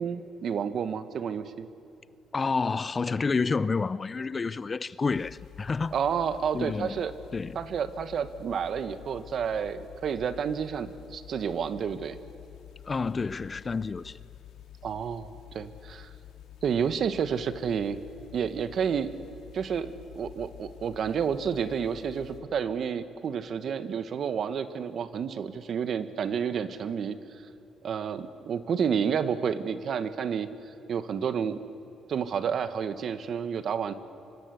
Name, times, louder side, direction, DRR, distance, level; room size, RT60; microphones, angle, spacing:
voice 1, 0.0-1.7 5.9-7.1 7.5-12.2 14.8-16.1 16.6-18.0 18.3-19.1 19.5-27.2 27.8-30.5 30.9-31.6 32.1-33.9, right 7 dB, 60° right, 1.4 m, -30 dB
voice 2, 2.3-5.9 6.5-7.0 7.3-7.6 12.8-14.2, left 4 dB, 35° left, 0.6 m, -29 dB
sound 1, 5.1-22.4, left 12 dB, 85° left, 3.3 m, -49 dB
25.0 x 25.0 x 8.3 m
cardioid pair, 90°, 0 cm